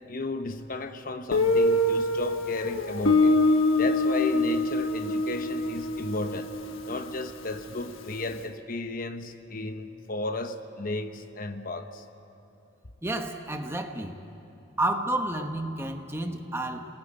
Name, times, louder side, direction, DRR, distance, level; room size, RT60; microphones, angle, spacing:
voice 1, 0.1-3.4 3.8-6.5 6.9-12.0, left 2 dB, 45° left, 8 dB, 1.0 m, -34 dB
Guitar, 1.3-8.0, left 2 dB, 85° left, 1.3 m, -25 dB
voice 2, 13.0-14.2 14.8-16.9, right 1 dB, 15° right, 4 dB, 1.2 m, -30 dB
28.0 x 20.0 x 9.0 m, 2.9 s
head